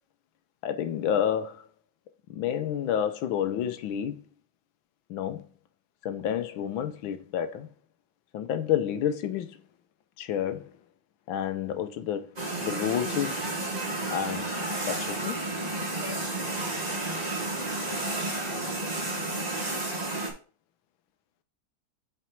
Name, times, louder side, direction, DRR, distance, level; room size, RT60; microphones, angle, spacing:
voice 1, 0.6-1.6 2.3-4.2 5.1-5.4 6.0-7.7 8.3-9.6 10.2-10.7 11.3-13.5 14.1-14.5 14.8-15.4, left 9 dB, 80° left, 1.5 m, -30 dB
sound 1, 12.4-20.3, right 2 dB, 25° right, 1.1 m, -31 dB
7.0 x 3.3 x 4.5 m
omnidirectional pair, 2.2 m